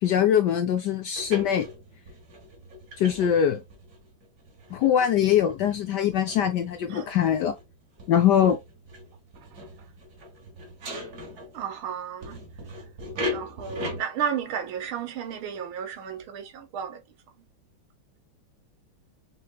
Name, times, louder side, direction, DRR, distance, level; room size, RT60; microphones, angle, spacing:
voice 1, 0.0-1.7 3.0-3.6 4.7-7.5 8.1-8.6, left 9 dB, 75° left, 1.0 m, -22 dB
sound 1, 1.2-11.8 12.2-14.0, left 1 dB, 50° right, 1.8 m, -39 dB
voice 2, 11.5-12.4 13.3-17.0, right 8 dB, 80° right, 1.8 m, -33 dB
5.7 x 3.2 x 2.3 m
omnidirectional pair, 2.3 m